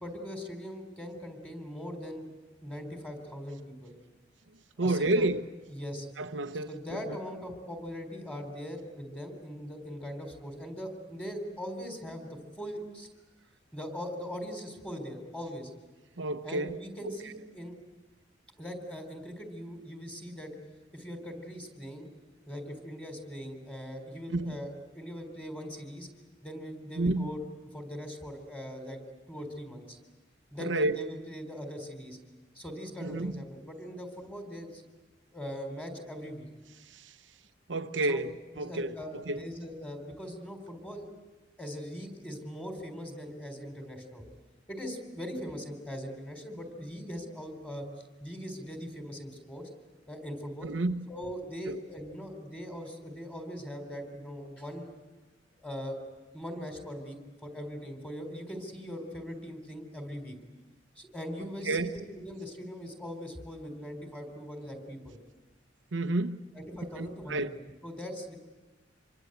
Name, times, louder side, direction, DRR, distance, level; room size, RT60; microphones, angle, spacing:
voice 1, 0.0-2.3 2.6-3.9 4.8-5.3 5.7-6.1 6.7-13.1 13.7-15.7 16.4-17.8 18.6-20.5 20.9-22.1 22.5-26.1 26.4-27.4 27.7-29.0 29.3-30.0 30.5-32.2 32.6-34.8 35.3-36.5 38.1-38.2 38.5-41.1 41.6-44.2 44.7-47.9 48.2-49.6 50.1-50.7 51.1-54.9 55.6-56.0 56.3-60.3 61.0-65.2 66.5-67.5 67.8-68.4, equal, 10° left, 3.9 m, -40 dB
voice 2, 4.8-5.4 6.2-7.2 16.2-16.8 24.3-24.6 27.0-27.3 30.6-31.1 33.0-33.4 36.9-37.1 37.7-39.4 50.6-51.1 51.7-51.8 61.7-61.9 65.9-66.4 66.9-67.5, right 2 dB, 80° right, 0.9 m, -30 dB
27.0 x 23.5 x 8.0 m
head